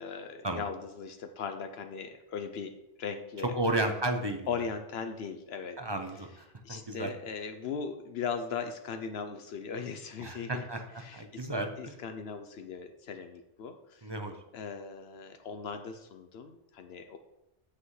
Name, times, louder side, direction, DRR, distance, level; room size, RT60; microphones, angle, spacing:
voice 1, 0.0-3.6 4.5-5.8 6.1-6.4 6.6-10.7 11.0-14.1 14.5-17.2, left 6 dB, 75° left, 7 dB, 0.9 m, -39 dB
voice 2, 3.5-4.4 5.8-6.3 6.7-7.1 10.2-10.8 11.1-11.9 14.0-14.3, right 2 dB, 30° right, 5 dB, 0.6 m, -32 dB
8.2 x 7.9 x 3.2 m, 0.88 s
omnidirectional pair, 1.1 m